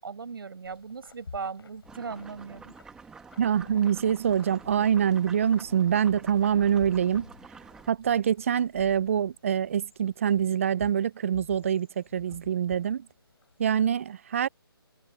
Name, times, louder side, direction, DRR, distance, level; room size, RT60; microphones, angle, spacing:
voice 1, 0.0-2.7, right 5 dB, 65° right, 5.7 m, -38 dB
sound 1, 0.6-13.6, left 5 dB, 70° left, 6.7 m, -50 dB
sound 2, 1.8-7.9, right 5 dB, 5° right, 1.4 m, -49 dB
voice 2, 3.4-7.3 7.9-13.1 13.6-14.5, right 8 dB, 35° right, 0.5 m, -25 dB
hypercardioid pair, 160°, 13 cm